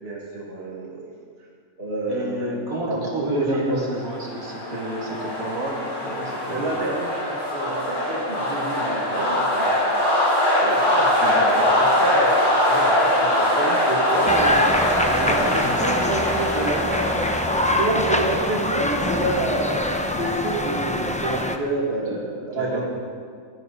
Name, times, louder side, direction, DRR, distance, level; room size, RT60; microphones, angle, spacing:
voice 1, 0.0-1.1 1.8-2.6 2.9-3.8 4.7-4.8 6.5-10.0 10.6-14.6 15.0-17.1 17.7-22.9, right 2 dB, 45° right, -3 dB, 2.5 m, -29 dB
voice 2, 2.1-6.8 11.2-11.7 15.2-15.7 21.9-22.2 22.5-22.9, equal, 75° right, -4 dB, 3.3 m, -31 dB
sound 1, 3.9-20.6, left 1 dB, 55° left, 4.8 m, -23 dB
sound 2, 14.3-21.6, left 1 dB, 10° left, 0.5 m, -24 dB
27.5 x 10.5 x 4.2 m, 2.1 s
omnidirectional pair, 1.5 m